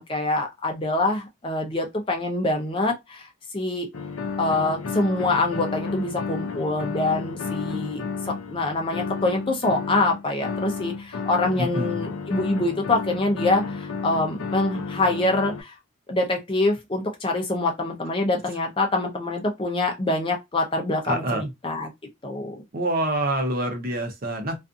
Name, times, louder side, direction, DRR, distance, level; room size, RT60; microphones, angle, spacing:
voice 1, 0.0-3.3 3.5-3.9 4.4-8.0 8.5-15.7 16.1-21.9 22.2-22.5, left 2 dB, 25° left, 0.5 m, -25 dB
sound 1, 3.9-15.6, left 4 dB, 80° left, 0.4 m, -32 dB
voice 2, 11.6-12.0 21.1-21.5 22.7-24.6, right 1 dB, 45° right, 0.6 m, -26 dB
2.5 x 2.4 x 2.4 m
head